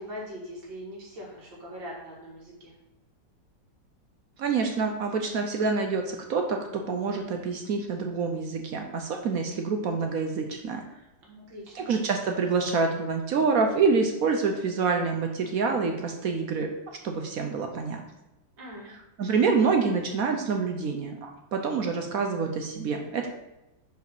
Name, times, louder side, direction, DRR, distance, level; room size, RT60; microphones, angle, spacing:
voice 1, 0.0-2.7 11.2-11.9 18.6-18.9, equal, 85° right, -3 dB, 2.7 m, -41 dB
voice 2, 4.4-10.8 11.7-16.7 17.0-18.0 19.2-23.3, right 4 dB, 60° right, 4 dB, 1.0 m, -27 dB
5.2 x 4.9 x 6.0 m, 0.94 s
omnidirectional pair, 2.0 m